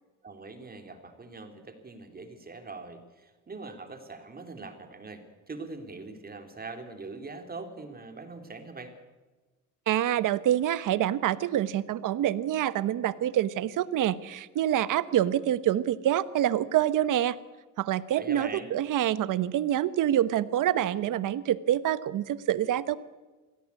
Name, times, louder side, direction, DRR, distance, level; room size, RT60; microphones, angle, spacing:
voice 1, 0.2-8.9 18.1-18.7, right 3 dB, 30° right, 6 dB, 3.3 m, -42 dB
voice 2, 9.9-17.4 17.8-23.0, right 11 dB, 75° right, 16 dB, 1.1 m, -26 dB
24.0 x 16.5 x 8.4 m, 1.2 s
cardioid pair, 110°, 32 cm